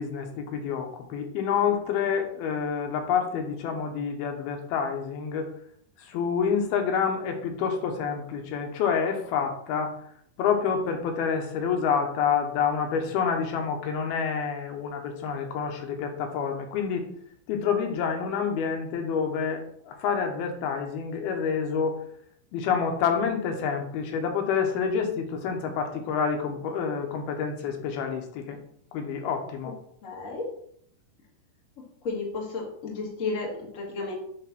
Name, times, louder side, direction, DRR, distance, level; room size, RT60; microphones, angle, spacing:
voice 1, 0.0-5.5 6.0-9.9 10.4-17.1 17.5-22.0 22.5-28.6 28.9-29.7, left 6 dB, 85° left, 4 dB, 2.9 m, -28 dB
voice 2, 30.0-30.4 32.0-34.2, left 3 dB, 30° left, -2 dB, 1.6 m, -32 dB
9.9 x 3.4 x 5.9 m, 0.66 s
omnidirectional pair, 4.4 m